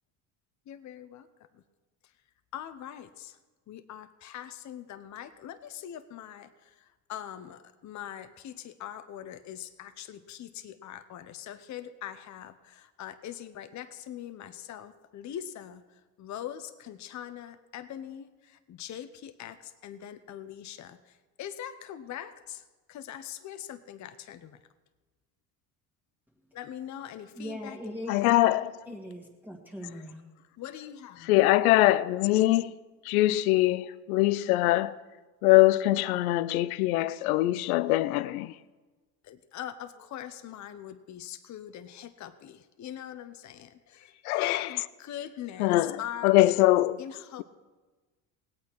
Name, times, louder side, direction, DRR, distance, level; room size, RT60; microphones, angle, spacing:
voice 1, 0.7-1.3 2.5-3.4 3.7-6.5 7.1-15.8 16.2-21.0 21.4-22.6 22.9-24.6 26.5-27.8 30.6-31.3 39.2-46.3 47.0-47.4, left 10 dB, 40° left, 0.8 m, -42 dB
voice 2, 27.4-28.3 28.9-30.3, equal, 5° right, 1.9 m, -40 dB
voice 3, 28.1-28.8 31.2-32.7 33.0-35.0 35.4-38.6 44.2-44.8 45.6-47.0, left 17 dB, 90° left, 0.5 m, -23 dB
18.0 x 8.7 x 4.6 m
supercardioid pair, 85°, 42 cm